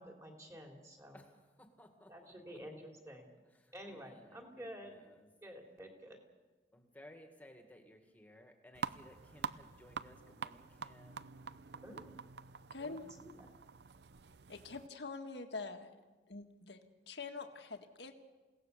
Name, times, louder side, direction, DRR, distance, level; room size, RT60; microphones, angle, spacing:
voice 1, 0.0-1.2 2.1-3.3 3.7-4.9 5.4-6.2 11.8-12.2 12.8-13.5, equal, 15° right, 2 dB, 3.1 m, -50 dB
voice 2, 1.1-2.6 3.5-5.3 6.7-11.3, left 1 dB, 10° left, 4 dB, 1.9 m, -60 dB
sound 1, 8.7-14.9, right 6 dB, 75° right, 0.7 m, -46 dB
voice 3, 12.7-13.1 14.5-15.9 16.3-18.1, left 4 dB, 85° left, 5 dB, 1.7 m, -45 dB
29.0 x 17.5 x 6.9 m, 1.3 s
head